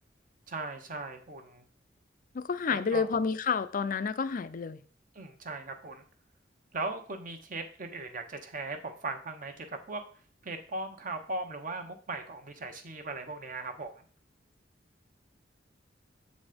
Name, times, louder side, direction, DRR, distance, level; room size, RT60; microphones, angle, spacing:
voice 1, 0.5-1.6 2.7-3.1 5.1-6.0 6.7-10.0 10.4-14.0, right 3 dB, 50° right, 1.0 m, -38 dB
voice 2, 2.3-4.8, left 5 dB, 50° left, 0.5 m, -30 dB
7.6 x 4.1 x 5.1 m
head